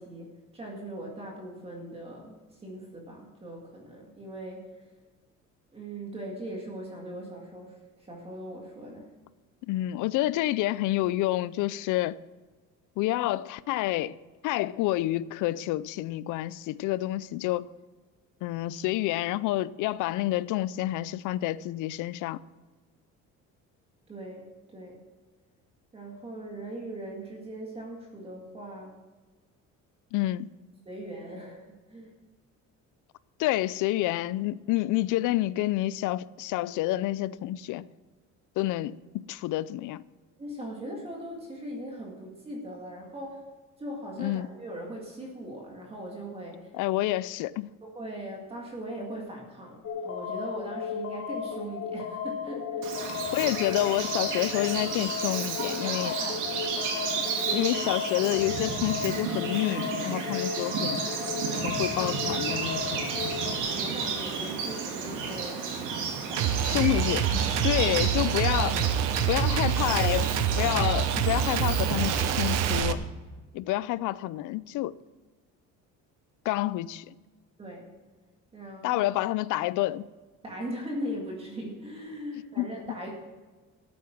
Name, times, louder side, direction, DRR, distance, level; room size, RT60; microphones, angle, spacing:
voice 1, 0.0-4.8 5.7-9.1 24.1-25.0 25.9-28.9 30.9-32.1 40.4-43.5 43.8-46.7 47.8-52.9 55.8-56.5 57.0-57.7 62.8-63.0 63.4-65.6 66.3-66.9 68.2-68.3 77.6-77.9 78.5-79.0 80.4-83.1, right 1 dB, 20° right, 2.0 m, -40 dB
voice 2, 9.7-12.2 13.0-14.2 14.4-17.7 18.4-22.4 30.1-30.5 33.4-37.9 38.6-40.0 44.2-44.5 46.7-47.7 53.3-56.1 57.5-61.0 61.6-63.1 66.6-68.8 69.3-70.3 70.6-73.0 73.5-75.0 76.4-77.1 78.8-80.0 82.6-82.7, left 16 dB, 75° left, 0.5 m, -28 dB
sound 1, 49.8-63.6, left 6 dB, 50° left, 1.5 m, -35 dB
Bird vocalization bird call bird song, 52.8-72.8, right 5 dB, 75° right, 2.7 m, -32 dB
sound 2, 66.4-72.9, right 9 dB, 55° right, 0.8 m, -26 dB
13.5 x 8.6 x 6.0 m
cardioid pair, 180°, 32 cm